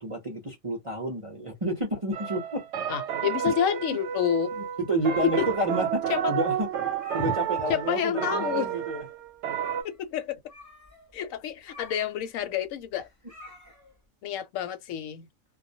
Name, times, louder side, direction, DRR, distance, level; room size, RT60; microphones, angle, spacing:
voice 1, 0.0-2.7 3.4-3.5 4.6-6.7 7.1-9.0, right 1 dB, 40° right, 0.5 m, -30 dB
sound 1, 2.1-9.8, right 9 dB, 65° right, 0.8 m, -31 dB
voice 2, 2.9-4.5 5.2-5.5 6.1-6.3 7.2-7.3 7.7-8.7 9.8-10.4 11.1-13.1 14.2-15.3, left 9 dB, 75° left, 1.0 m, -29 dB
sound 2, 5.2-6.1 6.4-6.5 6.9-7.8 8.1-8.7 9.0-9.1 9.5-10.0 10.5-14.0, left 2 dB, 15° left, 0.6 m, -49 dB
2.4 x 2.0 x 2.6 m
omnidirectional pair, 1.4 m